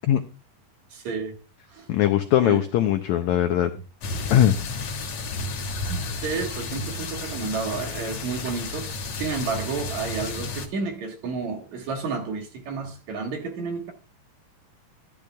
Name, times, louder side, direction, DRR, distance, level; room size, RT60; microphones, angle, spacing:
voice 1, 0.9-1.4 1.7-1.9 2.4-2.6 5.9-13.9, right 4 dB, 60° right, 2.5 m, -31 dB
voice 2, 1.9-3.7 4.3-4.5, left 11 dB, 85° left, 1.6 m, -20 dB
sound 1, 4.0-10.7, left 3 dB, 55° left, 2.6 m, -32 dB
13.5 x 10.0 x 2.3 m
omnidirectional pair, 4.1 m